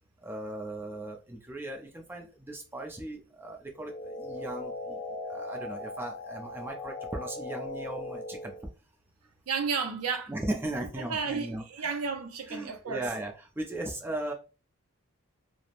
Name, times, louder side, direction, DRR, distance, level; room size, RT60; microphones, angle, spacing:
voice 1, 0.2-8.5 10.3-12.0 12.5-14.3, right 1 dB, 10° right, 0.4 m, -37 dB
sound 1, 3.7-8.7, left 2 dB, 5° left, 1.3 m, -39 dB
voice 2, 9.5-10.3 11.0-13.1, right 5 dB, 80° right, 0.5 m, -32 dB
3.0 x 2.0 x 2.5 m
head